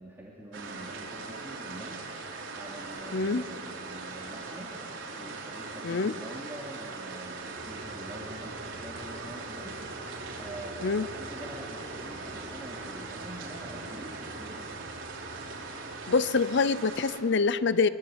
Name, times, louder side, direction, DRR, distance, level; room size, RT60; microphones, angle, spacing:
voice 1, 0.0-2.1 2.5-4.7 5.1-9.8 10.4-14.6, right 1 dB, 10° right, -5 dB, 2.8 m, -45 dB
sound 1, 0.5-17.2, right 3 dB, 75° right, 3.4 m, -41 dB
voice 2, 3.1-3.4 5.8-6.1 10.8-11.1 16.1-17.9, left 4 dB, 60° left, 15 dB, 0.6 m, -25 dB
sound 2, 7.5-16.2, right 1 dB, 50° right, 3.9 m, -45 dB
24.0 x 22.5 x 8.0 m, 2.4 s
head